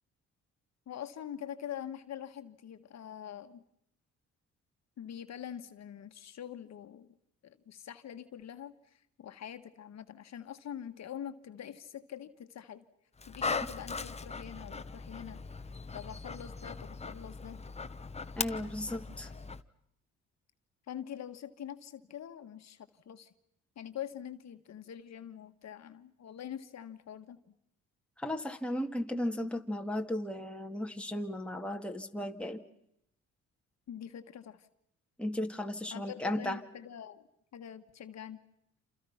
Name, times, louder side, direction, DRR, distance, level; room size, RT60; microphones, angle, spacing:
voice 1, 0.9-3.6 5.0-7.1 7.4-12.8 13.3-15.7 15.9-17.6 20.9-23.3 23.8-27.4 33.9-34.7 35.9-37.2 37.5-38.4, left 9 dB, 60° left, 8 dB, 1.6 m, -44 dB
Dog, 13.2-19.6, left 4 dB, 20° left, 1.2 m, -39 dB
voice 2, 18.4-19.3 28.2-32.6 35.2-36.6, left 1 dB, 5° left, 3 dB, 2.2 m, -35 dB
28.5 x 28.0 x 5.8 m, 0.75 s
cardioid pair, 90°, 30 cm